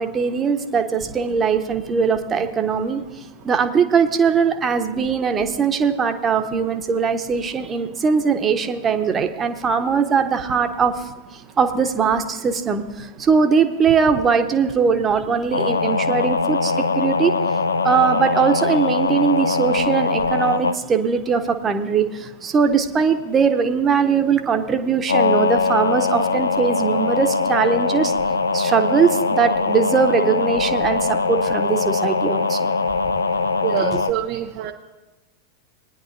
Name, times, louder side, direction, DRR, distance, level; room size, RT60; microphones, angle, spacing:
voice 1, 0.0-3.0 3.5-10.9 11.6-12.8 13.3-17.3 17.8-22.0 22.4-28.1 28.5-31.0 31.3-32.7 33.9-34.0, right 6 dB, 20° right, 7 dB, 1.0 m, -20 dB
sound 1, 15.5-20.8 25.1-34.1, left 4 dB, 75° left, 0.5 m, -21 dB
voice 2, 33.6-34.7, right 11 dB, 45° right, 4 dB, 0.6 m, -25 dB
20.5 x 10.0 x 2.6 m, 1.2 s
figure-of-eight pair, 90°, 0 cm